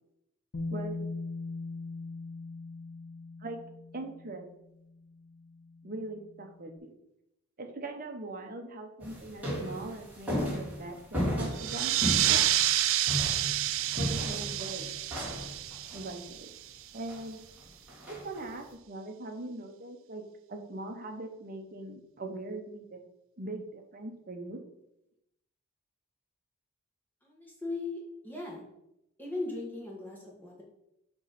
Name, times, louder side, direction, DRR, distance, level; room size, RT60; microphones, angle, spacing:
Bass guitar, 0.5-6.6, left 3 dB, 50° left, 0.5 m, -41 dB
voice 1, 0.7-1.1 3.4-3.6 3.9-4.5 5.8-6.9 7.6-12.4 14.0-14.9 15.9-16.5 16.9-17.4 18.1-20.2 20.5-23.0 23.4-24.6, right 2 dB, 40° right, 4 dB, 0.8 m, -41 dB
sound 1, 9.0-16.1 17.1-17.2 17.6-17.7 17.9-18.5, equal, 5° right, 1.8 m, -35 dB
sound 2, 11.5-16.8, right 12 dB, 60° right, 0.4 m, -29 dB
voice 2, 27.2-28.7 29.2-30.6, left 2 dB, 10° left, -3 dB, 1.5 m, -38 dB
6.4 x 3.1 x 5.8 m, 0.84 s
head